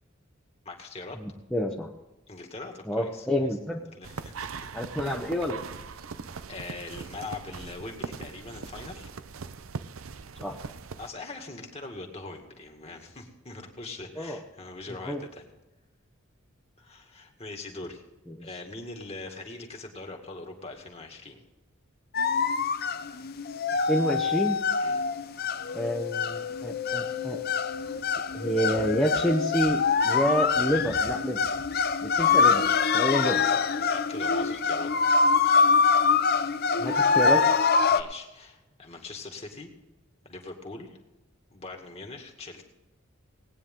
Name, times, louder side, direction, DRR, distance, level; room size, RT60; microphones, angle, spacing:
voice 1, 0.7-1.2 2.3-4.7 6.5-9.2 11.0-15.5 16.8-18.0 18.4-21.4 24.8-25.1 33.9-34.9 37.9-39.7 40.2-41.0 41.5-42.6, left 3 dB, 30° left, 3 dB, 2.1 m, -42 dB
voice 2, 1.2-1.9 2.9-3.8 4.7-5.6 10.4-10.6 14.2-14.4 15.0-15.2 18.4-18.5 23.9-24.6 25.7-27.4 28.3-31.4 32.0-32.6 32.9-33.5 36.8-37.4, equal, 5° left, -2 dB, 1.0 m, -28 dB
sound 1, 4.0-11.1, right 5 dB, 90° right, 0.6 m, -40 dB
sound 2, 22.1-38.0, left 5 dB, 50° left, 0.6 m, -24 dB
19.0 x 9.7 x 3.8 m, 1.0 s
head